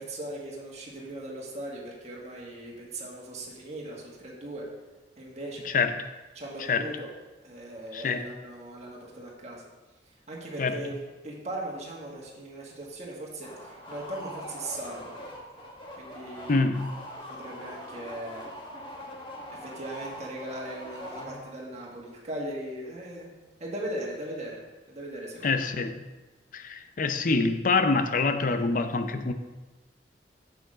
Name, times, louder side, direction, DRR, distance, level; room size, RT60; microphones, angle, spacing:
voice 1, 0.0-4.7 5.2-5.7 6.4-7.1 7.4-9.6 10.3-11.0 11.2-15.2 16.0-16.7 17.3-18.4 19.6-23.3 23.6-24.6 24.9-25.7, right 1 dB, 40° right, -3 dB, 1.7 m, -38 dB
voice 2, 5.6-6.1 6.6-6.8 7.9-8.2 10.6-10.8 16.5-16.9 25.4-26.0 26.5-29.3, left 4 dB, 50° left, 9 dB, 0.6 m, -26 dB
sound 1, 13.4-21.7, equal, 30° left, 1.2 m, -42 dB
7.0 x 6.4 x 5.0 m, 1.2 s
head